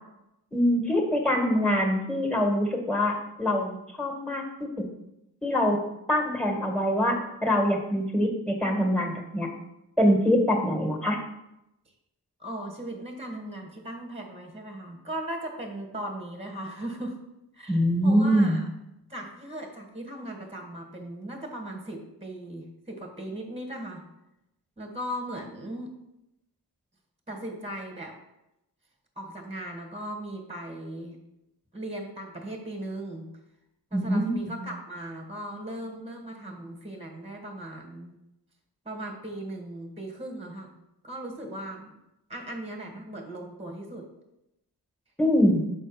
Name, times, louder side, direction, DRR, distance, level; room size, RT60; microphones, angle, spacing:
voice 1, 0.5-4.4 5.4-5.8 6.1-9.5 10.0-11.2 17.7-18.6 33.9-34.6 45.2-45.7, equal, 5° left, 2 dB, 1.9 m, -24 dB
voice 2, 12.4-17.2 17.5-18.7 19.1-24.0 24.8-25.9 27.3-28.2 29.2-31.2 31.7-33.2 33.9-38.1 38.8-40.7 41.0-41.9 42.3-44.1, right 1 dB, 15° right, 3 dB, 1.4 m, -38 dB
6.2 x 4.4 x 5.2 m, 0.88 s
cardioid pair, 55°, 40 cm